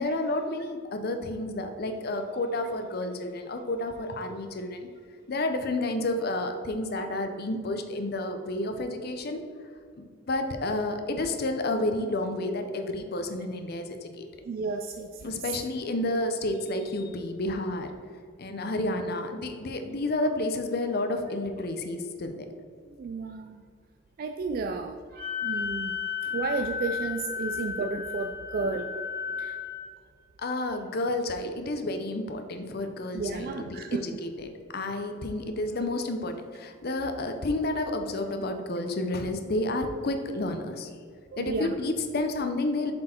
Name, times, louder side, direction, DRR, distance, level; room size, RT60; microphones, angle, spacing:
voice 1, 0.0-4.9 5.3-9.4 10.0-14.3 15.2-17.9 18.4-22.5 26.2-26.3 30.4-40.9 41.4-42.9, left 2 dB, 55° left, 6 dB, 0.6 m, -30 dB
voice 2, 14.5-15.6 22.9-23.6 24.2-25.9 26.3-29.0 29.4-29.6 33.1-34.0 41.3-41.7, right 4 dB, 50° right, 6 dB, 0.3 m, -33 dB
Wind instrument woodwind instrument, 25.1-29.8, left 7 dB, 90° right, 1.8 m, -33 dB
7.5 x 4.4 x 4.4 m, 2.1 s
head